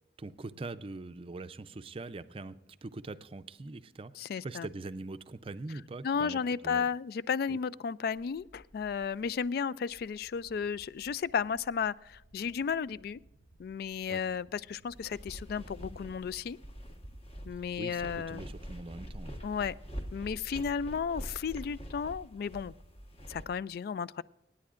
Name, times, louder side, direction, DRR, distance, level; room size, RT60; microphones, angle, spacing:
voice 1, 0.2-2.6 2.8-6.9 7.5-7.6 14.1-14.2 17.8-19.3, right 3 dB, 30° right, 11 dB, 0.5 m, -42 dB
voice 2, 4.1-4.7 6.0-13.2 13.6-16.6 17.5-18.4 19.4-19.7 20.1-22.7 23.3-24.2, left 6 dB, 60° left, 19 dB, 0.3 m, -33 dB
sound 1, 8.1-18.1, right 1 dB, 80° left, 2.3 m, -62 dB
sound 2, 14.9-23.4, equal, 35° left, 1.3 m, -45 dB
25.0 x 9.7 x 2.5 m, 0.93 s
head